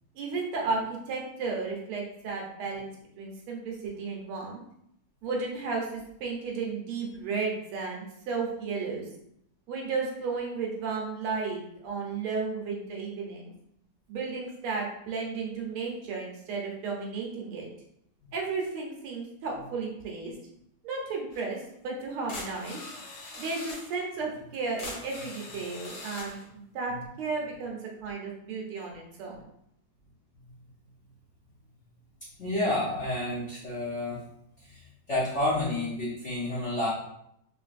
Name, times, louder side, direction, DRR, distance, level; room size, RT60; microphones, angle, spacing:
voice 1, 0.1-2.9 3.2-4.6 5.2-9.1 9.7-13.5 14.1-17.7 18.3-20.3 20.8-22.8 23.4-29.4, right 4 dB, 80° right, -1 dB, 1.8 m, -33 dB
sound 1, 21.3-21.4 22.0-22.1 22.3-24.0 24.5-26.5, left 2 dB, 70° left, 2.1 m, -42 dB
voice 2, 32.4-34.2 34.6-36.9, left 1 dB, 50° left, -8 dB, 0.9 m, -30 dB
4.0 x 3.2 x 2.5 m, 0.74 s
omnidirectional pair, 2.4 m